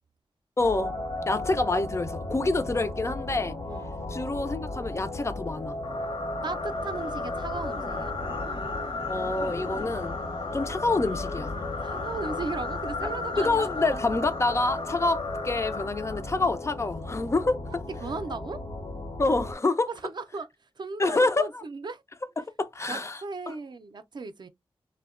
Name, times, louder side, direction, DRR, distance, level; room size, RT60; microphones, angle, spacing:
sound 1, 0.6-19.5, left 1 dB, 90° left, 1.0 m, -36 dB
voice 1, 0.6-0.9 1.3-3.6 4.1-5.8 9.1-11.5 13.4-17.8 19.2-19.9 21.0-21.6 22.4-23.2 23.5-23.6, left 3 dB, 30° left, 0.3 m, -27 dB
voice 2, 3.7-4.4 6.4-8.1 11.8-13.9 17.7-18.6 19.9-20.5 20.8-22.0 22.9-24.5, right 4 dB, 50° right, 0.4 m, -37 dB
sound 2, 5.8-16.6, left 3 dB, 65° left, 0.8 m, -36 dB
2.7 x 2.1 x 2.3 m
wide cardioid pair, 80°, 10 cm